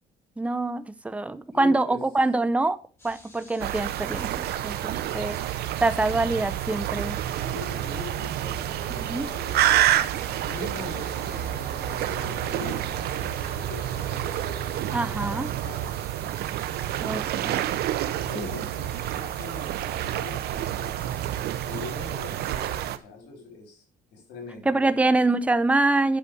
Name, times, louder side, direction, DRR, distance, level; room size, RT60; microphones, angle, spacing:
voice 1, 0.4-2.8 3.0-7.2 9.0-9.3 14.9-15.5 17.0-17.6 18.4-18.5 24.7-26.2, right 2 dB, 10° right, 13 dB, 0.7 m, -25 dB
voice 2, 1.5-2.0 7.3-10.0 10.3-17.4 18.0-21.3 21.6-23.8 24.1-25.1, left 4 dB, 85° left, 3 dB, 4.9 m, -42 dB
sound 1, 3.0-22.9, left 1 dB, 15° left, 5.6 m, -51 dB
sound 2, 3.6-23.0, right 12 dB, 70° right, 0.8 m, -29 dB
sound 3, 6.9-16.7, left 5 dB, 65° left, 3.0 m, -47 dB
8.5 x 6.8 x 6.4 m, 0.36 s
cardioid pair, 110°, 17 cm